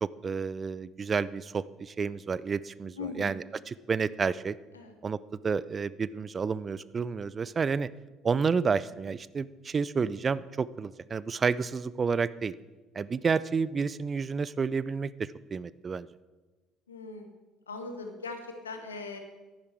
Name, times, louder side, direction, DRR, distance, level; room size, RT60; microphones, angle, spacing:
voice 1, 0.0-4.6 5.0-7.9 8.2-12.5 12.9-16.1, right 5 dB, 30° right, 18 dB, 0.4 m, -30 dB
voice 2, 3.0-3.4 4.7-4.9 16.9-17.3 17.7-19.2, left 3 dB, 80° left, 6 dB, 1.2 m, -40 dB
10.5 x 10.0 x 4.8 m, 1.2 s
figure-of-eight pair, 55°, 0 cm